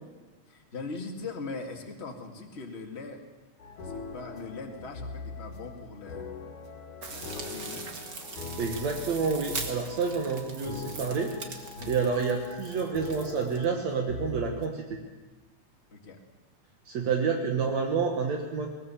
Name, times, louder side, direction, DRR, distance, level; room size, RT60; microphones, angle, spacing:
voice 1, 0.5-3.2 3.8-6.3 7.1-7.9 11.7-12.0 15.9-16.2, left 3 dB, 25° left, 2 dB, 2.1 m, -40 dB
sound 1, 3.6-14.7, left 4 dB, 80° left, 3.4 m, -42 dB
sound 2, 7.0-13.6, right 4 dB, 40° right, 2.2 m, -41 dB
voice 2, 8.6-15.0 16.9-18.7, right 5 dB, 65° right, 2 dB, 2.8 m, -29 dB
21.0 x 19.5 x 7.1 m, 1.3 s
omnidirectional pair, 3.5 m